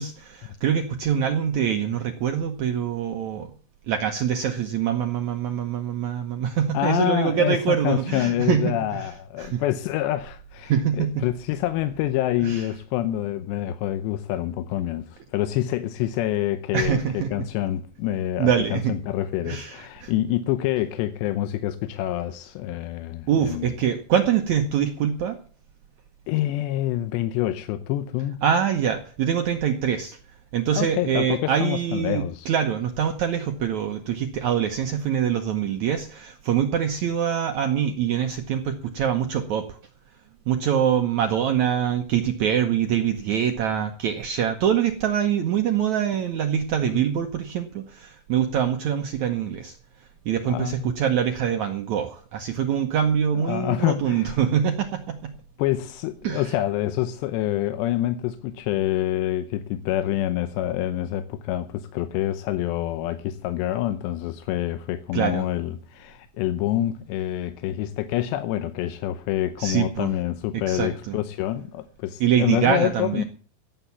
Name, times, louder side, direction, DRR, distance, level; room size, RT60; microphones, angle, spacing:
voice 1, 0.0-3.5 3.9-9.1 9.4-9.6 10.7-11.2 12.4-12.6 16.7-17.3 18.4-18.9 19.4-20.1 23.3-25.4 28.4-30.2 30.5-39.8 40.5-49.7 50.2-55.3 56.2-56.4 65.1-65.5 69.6-70.1 70.5-71.2 72.2-73.2, right 8 dB, 85° right, 1.6 m, -24 dB
voice 2, 6.7-23.7 26.3-28.4 30.7-32.5 46.8-47.1 50.4-51.0 53.4-54.4 55.6-73.2, left 13 dB, 85° left, 3.0 m, -27 dB
16.0 x 8.3 x 7.1 m
omnidirectional pair, 4.8 m